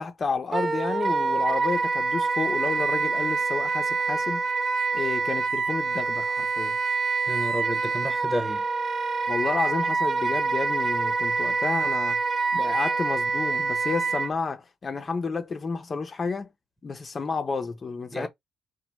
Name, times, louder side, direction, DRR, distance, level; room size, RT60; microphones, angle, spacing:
voice 1, 0.0-4.4 4.9-6.8 9.3-12.2 12.5-16.5 16.8-18.3, left 4 dB, 35° left, 0.4 m, -31 dB
Wind instrument woodwind instrument, 0.5-14.3, right 4 dB, 25° right, 0.4 m, -26 dB
voice 2, 7.3-8.6 18.1-18.3, equal, ahead, 0.9 m, -31 dB
2.9 x 2.1 x 2.8 m
cardioid pair, 90°, 0 cm